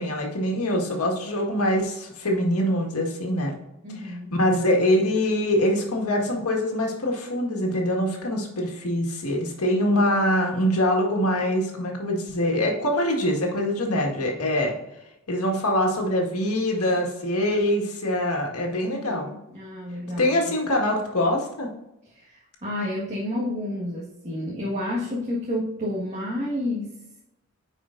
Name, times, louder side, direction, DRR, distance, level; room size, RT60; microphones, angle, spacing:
voice 1, 0.0-3.5 4.0-14.7 15.3-19.3 20.2-21.7, left 1 dB, 80° left, 0 dB, 1.8 m, -24 dB
voice 2, 3.8-4.3 18.9-20.6 22.1-26.9, left 1 dB, 30° right, -6 dB, 1.5 m, -30 dB
9.5 x 5.0 x 2.6 m, 0.89 s
head